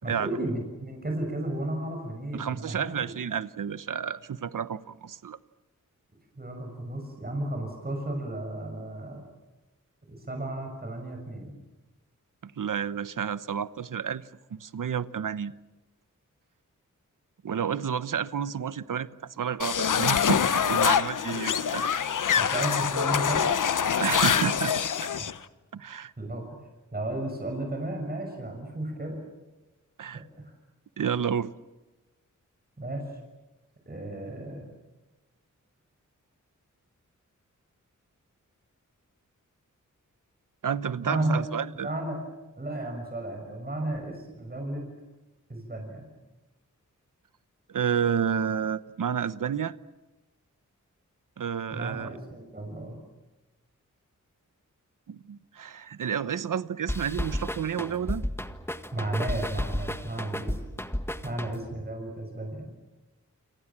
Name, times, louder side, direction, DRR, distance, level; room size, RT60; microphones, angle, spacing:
voice 1, 0.0-3.1 6.4-9.3 10.1-11.6 22.4-23.6 25.2-25.3 26.2-26.4 26.9-29.2 30.1-30.5 32.8-33.1 33.9-34.7 41.0-41.4 41.7-42.2 42.5-44.8 45.5-46.1 51.7-53.0 58.9-60.6 61.2-62.7, right 1 dB, 30° right, 6.3 m, -33 dB
voice 2, 2.3-5.4 12.4-14.2 14.5-15.5 17.4-19.1 19.4-21.9 22.4-22.5 24.0-24.8 25.7-26.1 30.0-30.2 31.0-31.5 40.6-41.9 47.7-49.7 51.4-52.2 55.1-58.3, right 7 dB, 85° right, 1.0 m, -30 dB
sound 1, 19.6-25.3, left 7 dB, 75° left, 1.0 m, -25 dB
sound 2, 56.9-61.8, left 1 dB, 10° left, 1.7 m, -33 dB
28.5 x 26.5 x 7.5 m
wide cardioid pair, 95°, 31 cm